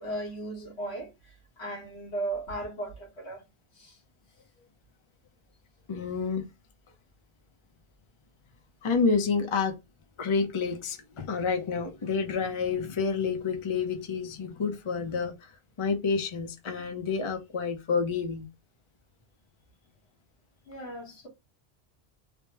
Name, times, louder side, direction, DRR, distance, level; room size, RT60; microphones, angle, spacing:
voice 1, 0.0-3.4 3.7-4.0 20.7-21.3, right 2 dB, 85° left, 1.5 m, -36 dB
voice 2, 5.9-6.5 8.8-9.8 10.2-15.5 15.8-18.4, left 5 dB, 35° left, 0.6 m, -29 dB
3.4 x 2.1 x 2.8 m
omnidirectional pair, 1.1 m